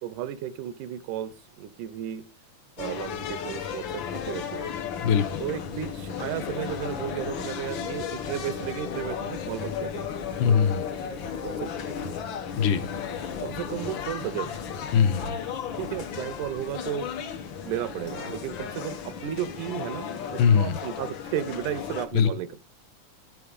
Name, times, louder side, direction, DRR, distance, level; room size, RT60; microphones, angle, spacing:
voice 1, 0.0-2.3 2.8-4.7 5.4-10.1 11.4-11.8 13.4-14.6 15.8-17.1 17.6-22.6, right 11 dB, 85° right, 15 dB, 2.2 m, -34 dB
sound 1, 2.8-22.1, left 7 dB, 65° left, 1.2 m, -34 dB
voice 2, 10.4-10.9 12.6-12.9 14.9-15.4 20.4-20.8 22.1-22.3, left 7 dB, 85° left, 8 dB, 2.5 m, -21 dB
12.0 x 4.7 x 5.1 m, 0.32 s
omnidirectional pair, 3.5 m